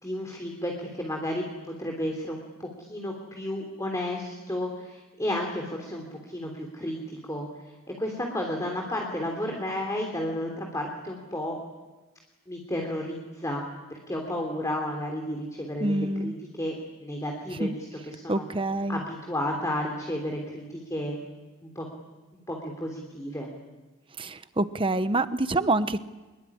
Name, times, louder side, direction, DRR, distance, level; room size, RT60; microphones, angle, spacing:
voice 1, 0.0-11.6 12.5-13.6 13.9-16.7 17.0-18.6 18.9-21.2 21.6-21.9 22.5-23.5, left 1 dB, 15° left, 1 dB, 3.3 m, -32 dB
voice 2, 15.8-16.3 17.6-17.7 18.3-19.0 24.2-26.0, right 2 dB, 25° right, 12 dB, 0.9 m, -26 dB
25.5 x 22.0 x 9.9 m, 1.2 s
head